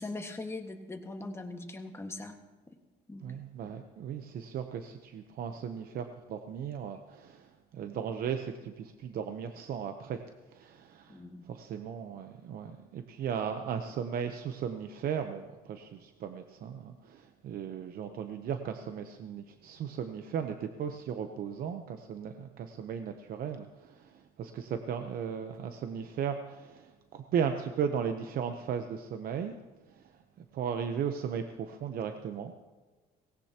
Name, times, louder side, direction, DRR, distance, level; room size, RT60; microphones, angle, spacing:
voice 1, 0.0-2.4 3.1-3.2 3.6-3.7 11.1-11.4, left 2 dB, 15° left, 4 dB, 1.7 m, -40 dB
voice 2, 3.2-10.2 10.5-11.2 11.5-29.6 30.5-32.5, right 7 dB, 60° right, 7 dB, 0.9 m, -36 dB
18.5 x 17.0 x 3.0 m, 1.3 s
cardioid pair, 110°, 17 cm